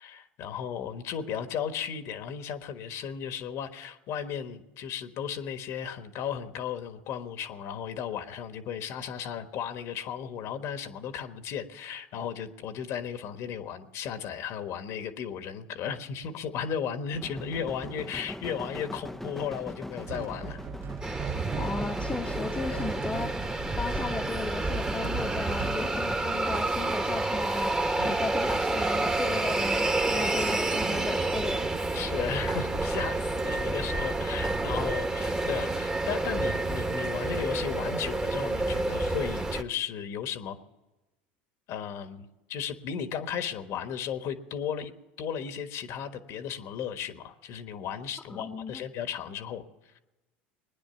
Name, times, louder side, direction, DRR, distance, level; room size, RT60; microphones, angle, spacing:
voice 1, 0.0-20.6 28.0-28.2 30.2-30.3 31.9-40.6 41.7-44.9 45.2-49.7, left 8 dB, 55° left, 9 dB, 1.4 m, -35 dB
sound 1, 17.1-26.2, left 1 dB, 5° left, 0.6 m, -41 dB
sound 2, 20.0-25.8, right 5 dB, 40° right, 0.9 m, -37 dB
sound 3, 21.0-39.6, right 2 dB, 15° right, 1.3 m, -29 dB
voice 2, 21.2-23.4 23.7-27.7 28.0-31.7 48.3-48.8, left 4 dB, 20° left, 3 dB, 1.0 m, -36 dB
21.0 x 9.9 x 7.0 m, 1.0 s
hypercardioid pair, 90°, 6 cm